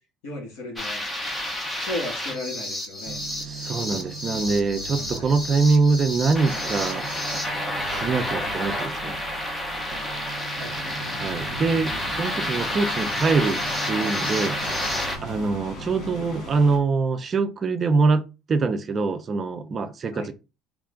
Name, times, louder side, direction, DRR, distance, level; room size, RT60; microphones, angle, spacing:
voice 1, 0.2-1.0 1.8-3.2 5.1-5.3 10.6-10.7 20.1-20.3, left 2 dB, 80° left, 1.9 m, -34 dB
sound 1, 0.8-15.2, left 1 dB, 10° left, 0.7 m, -30 dB
sound 2, 3.1-16.8, right 6 dB, 50° right, 0.8 m, -40 dB
voice 2, 3.4-7.1 7.8-9.2 11.1-14.6 15.2-18.2 18.5-20.3, right 4 dB, 30° right, 0.4 m, -24 dB
sound 3, 10.8-16.8, left 2 dB, 45° left, 1.1 m, -40 dB
3.1 x 2.3 x 3.6 m
cardioid pair, 150°, 0 cm